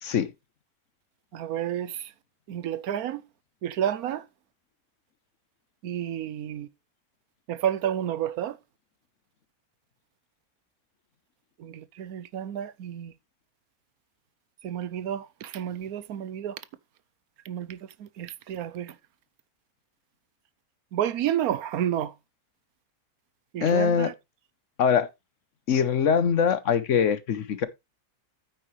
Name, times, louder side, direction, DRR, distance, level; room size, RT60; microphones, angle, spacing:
voice 1, 0.0-0.3 23.6-24.1 24.8-25.1 25.7-27.7, left 7 dB, 60° left, 1.1 m, -23 dB
voice 2, 1.3-2.1 2.5-3.2 3.6-4.2 5.8-6.7 7.5-8.6 11.6-13.1 14.6-16.6 17.5-18.9 20.9-22.1 23.5-24.1, right 10 dB, 80° right, 1.2 m, -30 dB
9.0 x 8.8 x 3.1 m
omnidirectional pair, 1.6 m